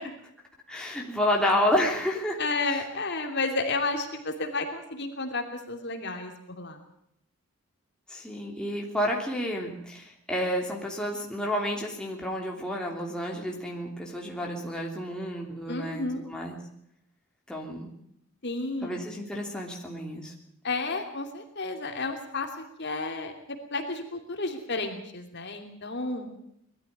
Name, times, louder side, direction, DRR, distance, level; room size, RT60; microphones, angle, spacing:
voice 1, 0.7-2.8 8.1-16.6 17.5-17.9 18.8-20.3, left 1 dB, 5° left, -1 dB, 3.0 m, -30 dB
voice 2, 2.4-6.8 15.7-16.2 18.4-19.0 20.6-22.5 22.8-23.3 23.7-26.3, left 3 dB, 50° left, 4 dB, 2.9 m, -31 dB
21.0 x 13.5 x 9.4 m, 0.74 s
head